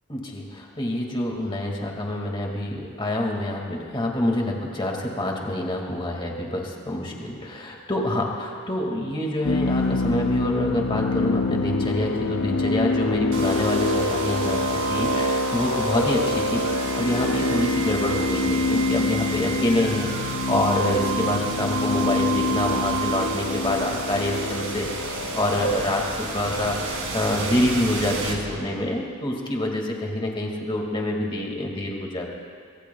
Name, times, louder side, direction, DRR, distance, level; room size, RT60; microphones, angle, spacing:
voice 1, 0.1-32.4, left 1 dB, 25° left, 0 dB, 2.0 m, -26 dB
sound 1, 9.4-28.2, left 3 dB, 75° left, 0.6 m, -26 dB
sound 2, 13.3-29.2, right 6 dB, 65° right, 2.5 m, -32 dB
25.0 x 22.0 x 2.3 m, 2.1 s
head